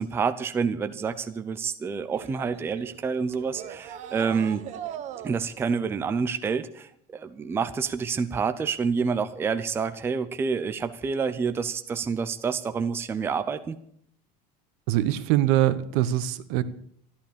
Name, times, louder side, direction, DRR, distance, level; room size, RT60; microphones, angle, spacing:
voice 1, 0.0-4.6 5.2-13.8, right 5 dB, 10° right, 10 dB, 0.5 m, -28 dB
sound 1, 2.1-5.7, right 10 dB, 40° right, 1.0 m, -39 dB
voice 2, 14.9-16.6, right 13 dB, 70° right, 14 dB, 1.1 m, -23 dB
13.5 x 12.0 x 6.9 m, 0.67 s
cardioid pair, 175°, 19 cm